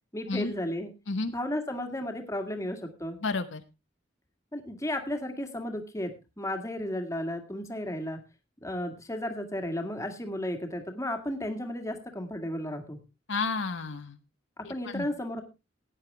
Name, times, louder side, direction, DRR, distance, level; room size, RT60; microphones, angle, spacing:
voice 1, 0.1-0.9 1.3-3.2 4.5-8.2 8.6-13.0 14.6-15.4, left 1 dB, 15° left, 5 dB, 1.9 m, -34 dB
voice 2, 3.2-3.6 13.3-14.2 14.6-15.1, left 3 dB, 70° left, 8 dB, 1.1 m, -31 dB
16.0 x 9.7 x 3.4 m, 0.26 s
head